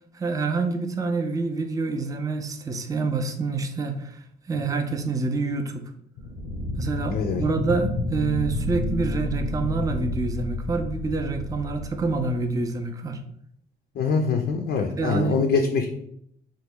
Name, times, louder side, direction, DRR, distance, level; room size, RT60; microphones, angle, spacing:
voice 1, 0.1-4.2 4.5-5.8 6.8-13.2 15.0-15.4, right 3 dB, 15° right, 6 dB, 0.4 m, -27 dB
sound 1, 6.2-12.6, left 1 dB, 90° left, 0.8 m, -30 dB
voice 2, 7.1-7.4 14.0-15.9, left 5 dB, 55° left, 3 dB, 0.5 m, -24 dB
3.0 x 2.1 x 3.5 m, 0.70 s
cardioid pair, 90°, 20 cm